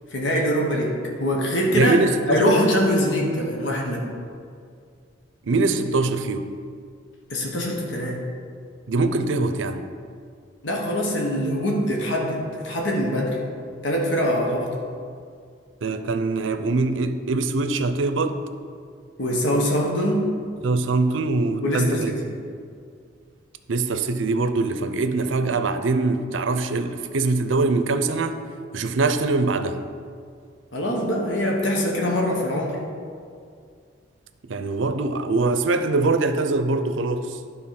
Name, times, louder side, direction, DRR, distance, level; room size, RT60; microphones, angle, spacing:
voice 1, 0.1-2.0 2.3-4.0 7.3-8.2 10.6-13.4 13.8-14.8 19.2-20.3 21.6-22.2 30.7-32.8, equal, 70° left, -1 dB, 1.4 m, -23 dB
voice 2, 1.7-2.5 5.5-6.5 8.9-9.8 15.8-18.4 20.6-22.4 23.7-28.4 28.7-29.8 34.4-37.4, right 3 dB, 80° right, 9 dB, 0.6 m, -23 dB
11.0 x 3.9 x 5.8 m, 2.2 s
head